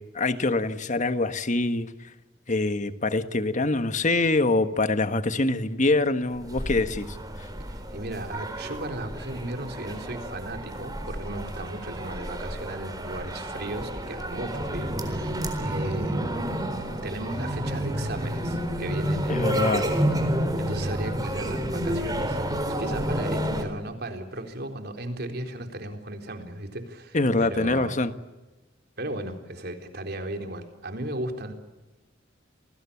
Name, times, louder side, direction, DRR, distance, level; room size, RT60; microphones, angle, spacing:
voice 1, 0.0-1.9 2.5-7.2 19.3-19.8 27.1-28.1, left 2 dB, 40° left, 1.5 m, -24 dB
sound 1, 6.3-23.6, right 1 dB, 20° right, 4.1 m, -30 dB
voice 2, 7.7-16.2 17.0-20.0 20.5-22.4 22.8-28.0 29.0-31.5, right 1 dB, 55° right, 3.9 m, -35 dB
28.5 x 20.5 x 8.5 m
head